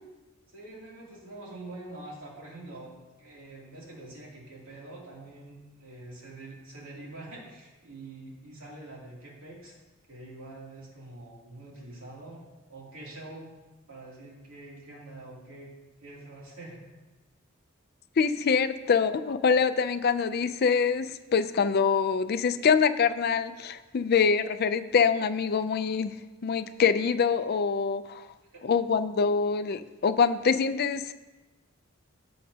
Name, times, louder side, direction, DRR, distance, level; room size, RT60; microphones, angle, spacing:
voice 1, 0.5-9.7 10.1-12.4 12.7-13.5 13.9-15.7 16.0-16.9 28.5-28.6, right 2 dB, 75° right, -4 dB, 2.8 m, -45 dB
voice 2, 18.2-26.1 26.4-28.2 28.6-31.1, left 6 dB, 50° left, 11 dB, 0.4 m, -25 dB
17.0 x 6.5 x 2.8 m, 1.2 s
head